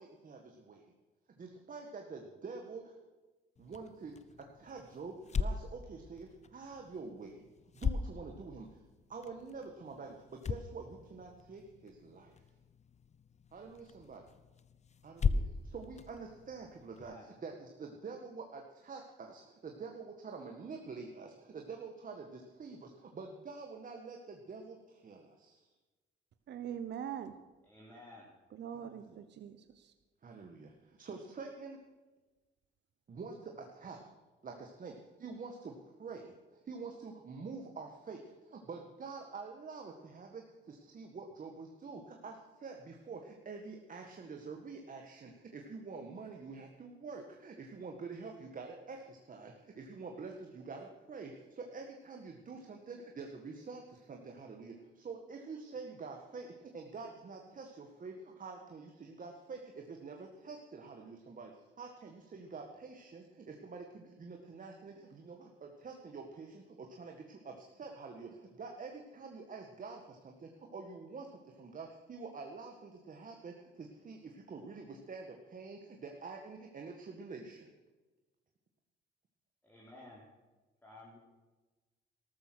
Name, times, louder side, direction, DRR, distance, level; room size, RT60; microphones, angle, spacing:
voice 1, 1.4-2.8 3.6-4.2 4.6-5.1 5.4-6.3 6.5-7.3 7.8-8.7 9.1-10.1 10.5-10.9 11.1-12.2 13.5-14.2 15.0-15.4 15.7-17.1 17.4-22.8 23.2-24.2 24.5-24.7 25.0-25.2 30.2-30.6 31.0-31.8 33.1-33.3 33.8-34.0 34.4-34.9 35.2-35.7 36.0-36.2 36.7-38.2 38.7-40.4 40.7-42.3 42.6-43.2 43.5-49.5 49.8-51.3 51.7-53.8 54.1-54.7 55.1-56.5 56.7-58.1 58.4-59.6 60.0-61.5 61.8-64.9 65.2-65.5 65.8-66.5 67.0-67.1 67.5-67.6 67.8-68.3 68.6-70.0 70.7-71.3 71.6-72.7 73.1-73.5 74.1-74.2 74.5-75.2 75.5-77.6, right 4 dB, 45° right, 1.7 m, -46 dB
sound 1, 3.6-17.2, left 5 dB, 35° left, 0.7 m, -40 dB
voice 2, 26.5-27.3 28.5-29.9, right 9 dB, 60° right, 0.9 m, -42 dB
voice 3, 27.6-28.3 79.6-80.2 80.8-81.2, left 1 dB, 10° left, 3.7 m, -54 dB
13.5 x 13.0 x 6.3 m
cardioid pair, 90°, 20 cm